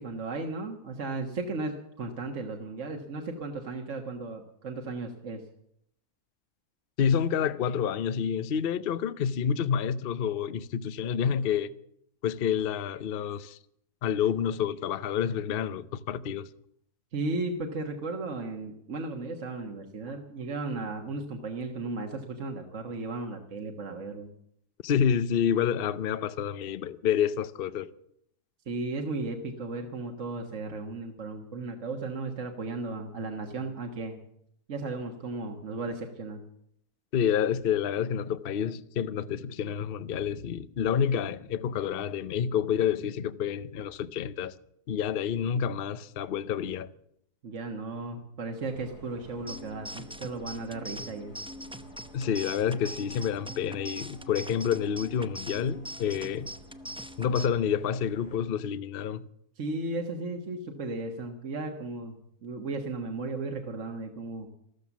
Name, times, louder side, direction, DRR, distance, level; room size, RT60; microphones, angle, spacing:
voice 1, 0.0-5.4 17.1-24.3 28.7-34.2 34.7-36.4 47.4-51.4 59.6-64.5, right 3 dB, 55° right, 1.7 m, -35 dB
voice 2, 7.0-11.7 12.2-13.6 14.0-16.5 24.8-27.9 37.1-44.5 44.9-46.9 52.1-56.5 57.2-59.3, left 8 dB, 50° left, 0.7 m, -28 dB
sound 1, 48.6-58.4, equal, 85° left, 4.3 m, -52 dB
sound 2, 49.5-57.5, equal, 10° right, 0.3 m, -42 dB
14.0 x 13.5 x 7.2 m
omnidirectional pair, 1.6 m